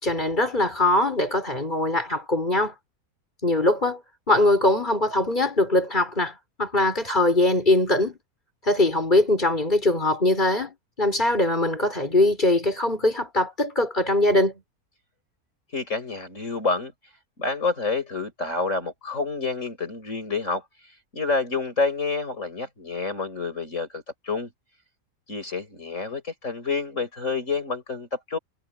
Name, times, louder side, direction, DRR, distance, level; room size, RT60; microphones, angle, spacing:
voice 1, 0.0-2.7 3.4-4.0 4.3-8.2 8.6-14.6, left 2 dB, 30° left, 5.7 m, -22 dB
voice 2, 15.7-16.9 17.4-20.6 21.1-24.5 25.3-28.4, left 4 dB, 50° left, 5.8 m, -28 dB
omnidirectional pair, 1.6 m